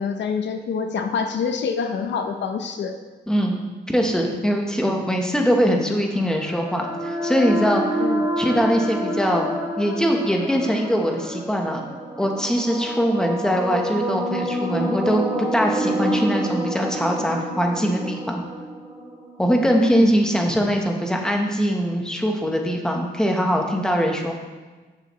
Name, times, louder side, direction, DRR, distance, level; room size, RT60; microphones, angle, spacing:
voice 1, 0.0-2.9 8.0-8.3 19.8-20.1, left 5 dB, 80° left, 6 dB, 0.7 m, -26 dB
voice 2, 3.3-8.0 8.4-11.8 12.2-18.4 19.4-24.3, equal, 5° left, 1 dB, 1.1 m, -22 dB
sound 1, 5.7-19.8, right 1 dB, 15° right, 2.0 m, -28 dB
10.5 x 6.7 x 3.2 m, 1.3 s
cardioid pair, 105°, 18 cm